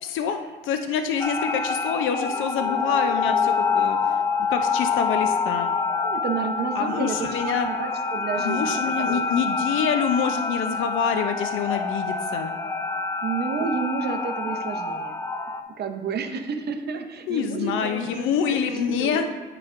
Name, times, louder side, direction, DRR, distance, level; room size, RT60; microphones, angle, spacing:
voice 1, 0.0-5.7 6.8-7.7 8.3-12.5 17.3-19.3, left 7 dB, 85° left, 7 dB, 0.5 m, -26 dB
sound 1, 1.2-15.6, left 4 dB, 15° left, 0.5 m, -26 dB
voice 2, 6.0-9.2 13.2-15.2 15.8-19.2, right 5 dB, 55° right, 6 dB, 0.8 m, -31 dB
9.7 x 4.9 x 2.5 m, 1.4 s
cardioid pair, 90°, 20 cm